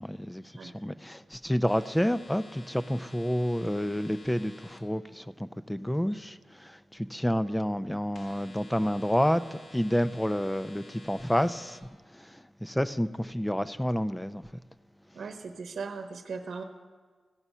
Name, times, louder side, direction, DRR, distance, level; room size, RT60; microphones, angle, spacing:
voice 1, 0.0-11.8 12.1-14.4, equal, 5° left, 0.4 m, -29 dB
sound 1, 1.6-4.8 8.1-11.8, left 2 dB, 75° left, 1.3 m, -51 dB
voice 2, 15.1-16.6, right 5 dB, 75° right, 0.9 m, -38 dB
15.5 x 6.0 x 5.5 m
cardioid pair, 75°, 0 cm